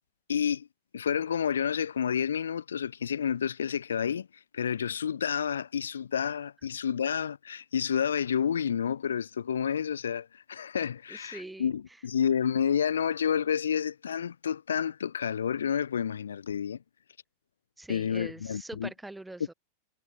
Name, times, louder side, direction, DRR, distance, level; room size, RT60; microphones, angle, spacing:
voice 1, 0.3-0.7 0.9-16.8 17.9-18.9, left 8 dB, 70° left, 0.5 m, -30 dB
voice 2, 11.1-11.7 17.8-19.5, right 2 dB, 5° right, 2.8 m, -43 dB
figure-of-eight pair, 90°, 0 cm